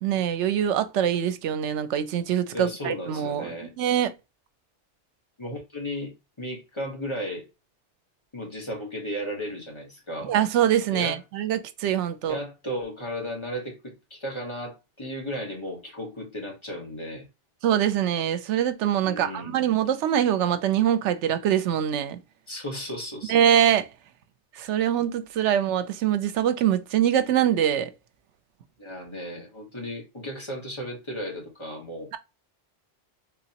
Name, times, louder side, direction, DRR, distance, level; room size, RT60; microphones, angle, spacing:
voice 1, 0.0-4.1 10.2-12.4 17.6-22.2 23.3-23.9 24.6-27.9, right 10 dB, 80° right, 0.9 m, -24 dB
voice 2, 2.5-3.7 5.4-7.5 8.3-10.3 10.9-11.2 12.3-17.3 19.0-19.6 22.5-23.5 28.8-32.1, equal, 25° left, 1.3 m, -35 dB
3.8 x 3.0 x 2.8 m
omnidirectional pair, 1.2 m